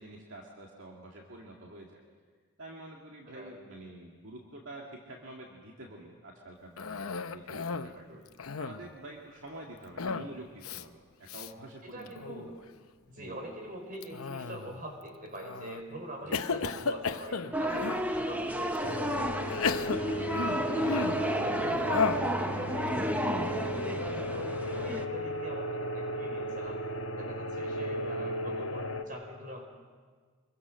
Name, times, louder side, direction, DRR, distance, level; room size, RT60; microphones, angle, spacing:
voice 1, 0.0-2.0 2.6-8.1 8.6-12.1 12.4-12.6 13.2-13.4 16.2-16.4 20.1-20.4, right 1 dB, 65° right, -1 dB, 2.2 m, -47 dB
voice 2, 3.3-3.6 7.9-8.2 11.8-12.6 13.0-19.5 20.1-26.8 27.1-29.6, right 1 dB, 40° right, 2 dB, 4.9 m, -44 dB
Cough, 6.8-8.0 8.3-8.9 10.0-10.3 10.6-10.8 11.3-11.5 12.1-12.5 14.0-14.8 15.4-15.8 16.3-18.1 18.7-18.8 19.5-21.3 21.9-22.3, left 5 dB, 80° left, 0.8 m, -34 dB
sound 1, 17.5-25.1, equal, 5° right, 0.8 m, -32 dB
sound 2, 18.8-29.0, equal, 65° left, 1.4 m, -35 dB
26.5 x 22.5 x 6.4 m, 1.5 s
head